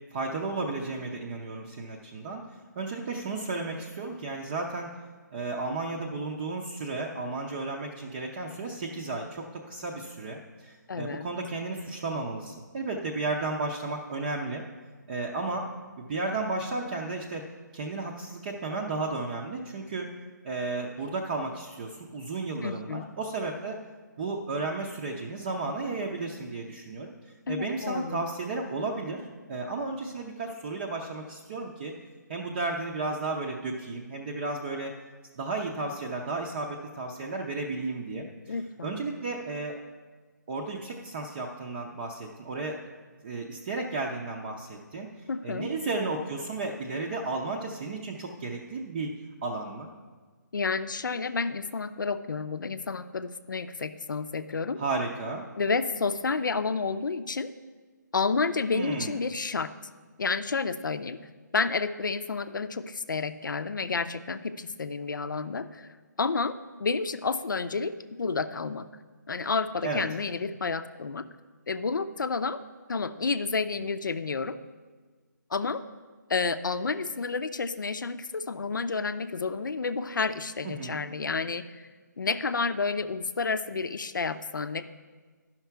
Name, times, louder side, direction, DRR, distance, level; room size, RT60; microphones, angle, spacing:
voice 1, 0.1-4.9 5.3-14.6 15.1-15.7 16.0-17.4 17.7-20.1 20.4-23.8 24.2-27.1 27.5-31.9 32.3-34.9 35.4-38.6 38.8-39.8 40.5-42.8 43.2-45.1 45.4-49.1 49.4-49.9 54.8-55.4 58.7-59.2 69.8-70.0 80.6-81.0, right 3 dB, 30° right, 0 dB, 0.6 m, -33 dB
voice 2, 10.9-11.3 22.6-23.1 27.5-28.2 38.5-38.9 45.3-45.7 50.5-54.8 55.6-57.5 58.1-59.7 60.2-61.2 61.5-68.9 69.3-71.3 71.7-72.6 72.9-74.6 75.5-75.8 76.3-81.8 82.2-84.9, left 4 dB, 75° left, 11 dB, 0.6 m, -30 dB
11.0 x 5.9 x 4.6 m, 1.4 s
hypercardioid pair, 160°, 10 cm